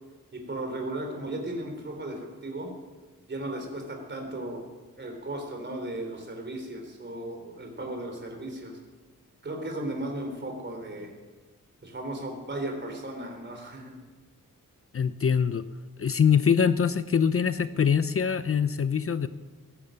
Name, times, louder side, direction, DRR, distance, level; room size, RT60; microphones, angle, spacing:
voice 1, 0.3-2.7 3.3-4.6 5.0-8.8 9.4-11.1 11.8-14.0, right 1 dB, 35° right, 3 dB, 3.3 m, -36 dB
voice 2, 14.9-15.7 16.0-19.3, left 7 dB, 45° left, 12 dB, 0.6 m, -23 dB
18.0 x 10.5 x 7.5 m, 1.3 s
wide cardioid pair, 150°, 33 cm